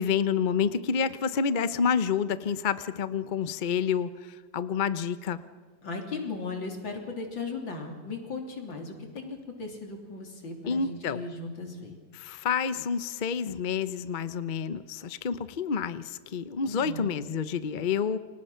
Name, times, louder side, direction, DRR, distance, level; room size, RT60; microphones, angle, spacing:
voice 1, 0.0-4.1 4.5-5.4 10.7-11.2 12.1-18.2, left 6 dB, 45° left, 14 dB, 0.6 m, -28 dB
voice 2, 5.8-11.9 16.6-17.1, left 3 dB, 85° left, 3 dB, 4.0 m, -37 dB
29.5 x 25.5 x 5.7 m, 1.5 s
omnidirectional pair, 2.0 m